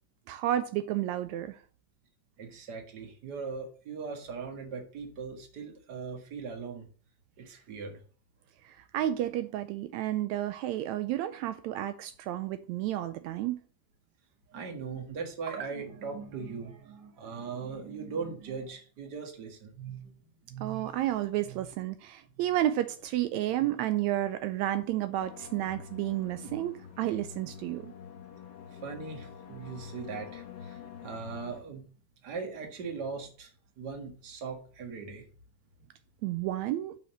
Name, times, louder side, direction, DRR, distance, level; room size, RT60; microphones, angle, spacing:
voice 1, 0.3-1.6 8.6-13.6 20.6-27.9 36.2-36.9, right 13 dB, 90° right, 1.6 m, -31 dB
voice 2, 2.4-6.9 7.4-8.0 14.5-20.1 20.5-20.9 21.4-21.7 28.8-31.9 32.2-33.5 33.8-35.2, right 5 dB, 40° right, 1.7 m, -39 dB
sound 1, 25.2-31.6, left 7 dB, 85° left, 0.9 m, -46 dB
7.4 x 5.7 x 6.6 m
omnidirectional pair, 3.9 m